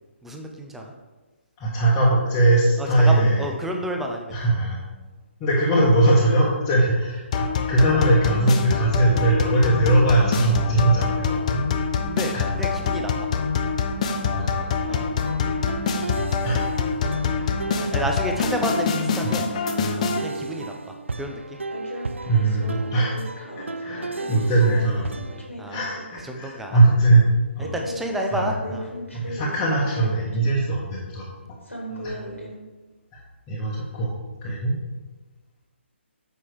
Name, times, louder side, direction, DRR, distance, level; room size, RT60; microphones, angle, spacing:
voice 1, 0.2-0.9 2.8-4.3 12.0-12.3 12.6-13.3 14.9-15.2 17.9-19.5 20.2-20.7 21.2-21.4 25.6-25.9 26.3-26.8 27.7-28.9 31.9-32.5 34.5-34.6, equal, 5° right, 2 dB, 0.6 m, -30 dB
voice 2, 1.6-3.5 4.3-4.8 5.4-11.6 12.3-12.4 14.4-14.8 16.4-16.6 17.4-17.6 19.2-19.3 22.3-23.1 23.5-25.2 25.7-27.2 27.5-27.7 28.3-28.6 29.1-31.3 32.0-32.1 33.1-33.2 33.5-34.1 34.4-34.7, right 2 dB, 15° left, -8 dB, 1.3 m, -20 dB
sound 1, 7.3-20.2, left 5 dB, 35° left, 0.6 m, -25 dB
sound 2, 14.9-25.5, right 3 dB, 75° right, 0.5 m, -34 dB
sound 3, 17.6-20.2 21.7-26.2 26.6-26.7 27.6-30.4 31.6-32.6, equal, 90° left, 2.2 m, -38 dB
7.6 x 5.5 x 4.8 m, 1.2 s
figure-of-eight pair, 140°, 7 cm